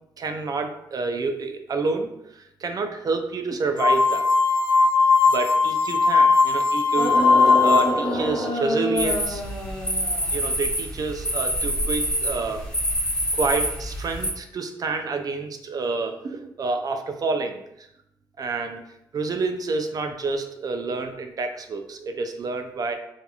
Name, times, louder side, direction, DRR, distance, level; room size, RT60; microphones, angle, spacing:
voice 1, 0.2-4.3 5.3-7.1 7.6-9.4 10.3-12.6 13.3-17.9 18.4-18.8 19.1-22.9, right 3 dB, 45° right, 6 dB, 0.4 m, -28 dB
sound 1, 3.8-8.2, left 4 dB, 65° left, 0.6 m, -19 dB
sound 2, 7.0-10.4 11.5-11.6, equal, 15° right, 1.2 m, -27 dB
sound 3, 9.0-14.3, equal, 10° left, 0.9 m, -27 dB
2.7 x 2.4 x 2.3 m, 0.80 s
supercardioid pair, 65°, 9 cm